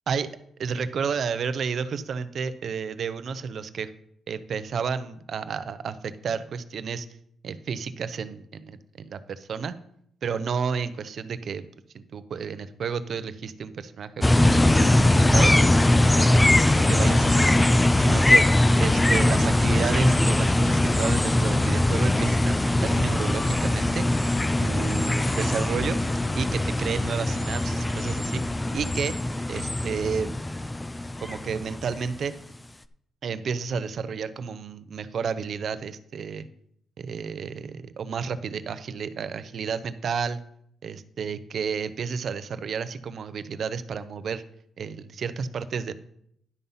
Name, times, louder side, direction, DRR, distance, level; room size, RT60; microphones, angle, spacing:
voice 1, 0.6-3.9 4.3-7.1 7.4-9.7 10.2-11.7 11.9-14.5 14.8-15.5 16.2-16.5 16.9-18.5 18.8-24.0 24.6-26.0 26.4-28.4 28.7-29.2 29.5-30.3 31.2-32.3 33.2-36.5 37.0-40.4 40.8-44.4 44.8-45.9, right 6 dB, 55° right, 13 dB, 0.6 m, -31 dB
sound 1, 14.2-32.2, left 1 dB, 15° left, 0.4 m, -21 dB
11.0 x 5.5 x 5.6 m, 0.70 s
cardioid pair, 130°, 0 cm